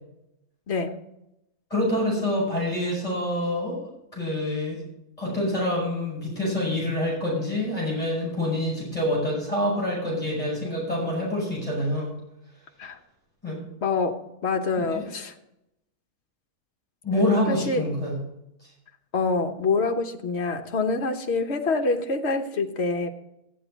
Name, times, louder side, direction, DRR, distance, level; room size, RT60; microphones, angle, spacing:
voice 1, 0.7-1.0 12.8-13.0 13.8-15.3 17.5-17.8 19.1-23.1, left 3 dB, 50° left, 4 dB, 1.3 m, -26 dB
voice 2, 1.7-4.8 5.2-12.1 13.4-13.6 14.8-15.0 17.0-18.2, left 1 dB, 25° left, -5 dB, 5.7 m, -26 dB
14.5 x 9.7 x 4.0 m, 0.84 s
omnidirectional pair, 1.5 m